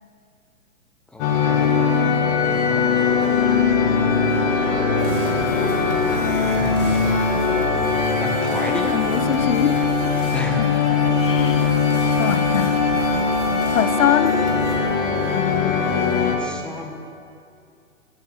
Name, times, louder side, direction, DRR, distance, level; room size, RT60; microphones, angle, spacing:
voice 1, 1.1-1.8 2.5-3.1 6.5-7.2 8.2-9.0 10.3-10.9 16.2-16.9, left 2 dB, ahead, 0.8 m, -33 dB
sound 1, 1.2-16.4, left 5 dB, 35° left, 1.9 m, -20 dB
sound 2, 5.0-14.8, right 2 dB, 85° right, 3.6 m, -33 dB
voice 2, 8.8-10.1 10.6-11.7 12.1-12.8 13.7-14.4, left 11 dB, 65° left, 0.6 m, -24 dB
18.0 x 7.0 x 6.3 m
figure-of-eight pair, 120°, 42 cm